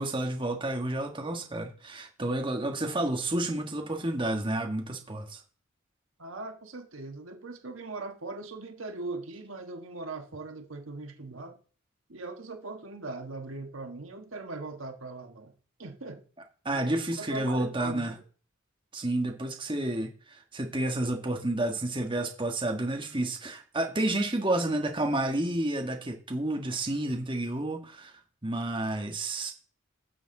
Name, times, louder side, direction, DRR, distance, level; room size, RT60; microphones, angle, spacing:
voice 1, 0.0-5.4 16.6-18.1 18.9-28.1 28.4-29.5, right 1 dB, 25° right, 1.4 m, -30 dB
voice 2, 6.2-11.6 12.1-15.5 15.8-16.2 16.7-16.8 17.2-18.1, right 3 dB, 80° right, 1.4 m, -40 dB
15.5 x 6.9 x 3.8 m
head